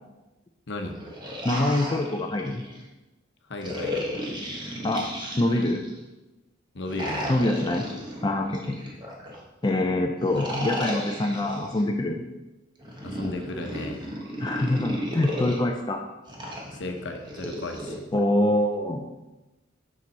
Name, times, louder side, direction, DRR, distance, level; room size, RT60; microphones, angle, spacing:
voice 1, 0.7-1.0 3.5-4.1 6.7-7.4 13.0-14.0 16.7-18.0, left 2 dB, 60° left, 4 dB, 0.9 m, -35 dB
sound 1, 0.9-2.8 3.6-6.0 6.9-9.4 10.2-11.8 12.8-15.6 16.3-18.0, equal, 25° right, 1.3 m, -34 dB
voice 2, 1.4-2.6 4.8-5.1 5.4-5.8 7.3-7.9 8.2-8.8 9.6-12.2 14.4-16.0 18.1-19.1, left 1 dB, 20° left, 2 dB, 0.4 m, -25 dB
6.9 x 6.0 x 4.1 m, 1.1 s
head